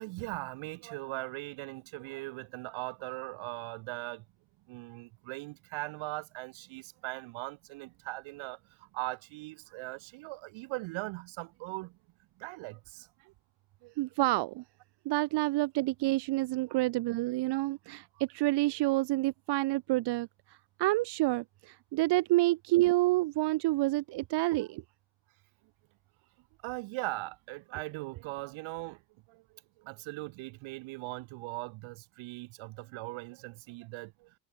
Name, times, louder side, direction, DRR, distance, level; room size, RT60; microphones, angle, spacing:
voice 1, 0.0-4.3 4.7-12.0 12.4-13.3 13.8-13.9 16.6-16.8 24.6-24.7 26.6-29.0 29.3-34.3, right 22 dB, 75° right, 1.7 m, -40 dB
voice 2, 14.0-14.6 15.1-24.8, right 18 dB, 60° right, 0.7 m, -28 dB
supercardioid pair, 90°, 48 cm